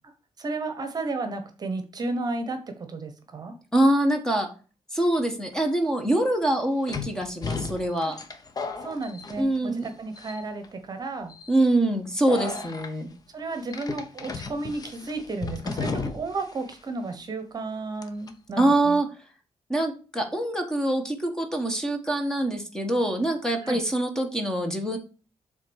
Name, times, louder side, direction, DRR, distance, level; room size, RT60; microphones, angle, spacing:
voice 1, 0.4-2.6 2.9-3.5 8.0-8.1 8.8-11.3 12.4-12.6 13.3-19.0 23.6-23.8, right 3 dB, 35° right, 7 dB, 1.1 m, -33 dB
voice 2, 3.7-4.5 4.9-8.1 9.4-9.9 11.5-13.1 18.6-19.1 19.7-25.0, right 1 dB, 5° left, 4 dB, 1.3 m, -24 dB
sound 1, 5.5-5.6 6.9-9.9 10.2-10.7 11.3-11.5 12.3-12.9 13.7-16.5 16.7-16.8 18.0-18.3, left 4 dB, 35° left, 0.9 m, -34 dB
7.5 x 3.6 x 6.3 m, 0.36 s
wide cardioid pair, 150°, 11 cm